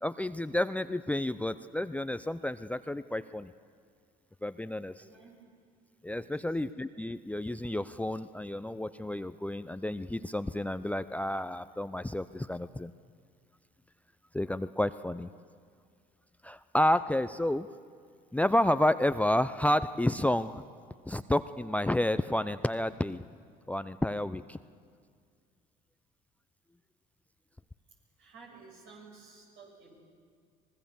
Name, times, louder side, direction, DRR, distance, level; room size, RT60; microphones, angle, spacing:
voice 1, 0.0-3.5 4.4-5.0 6.0-12.9 14.3-15.3 16.4-17.7 18.3-20.6 21.1-23.2 23.7-24.6, left 1 dB, 5° left, 14 dB, 0.6 m, -30 dB
voice 2, 4.9-5.4 6.2-6.5 28.2-29.9, right 4 dB, 65° right, 0 dB, 6.9 m, -53 dB
24.5 x 20.0 x 7.1 m, 2.1 s
hypercardioid pair, 70°, 20 cm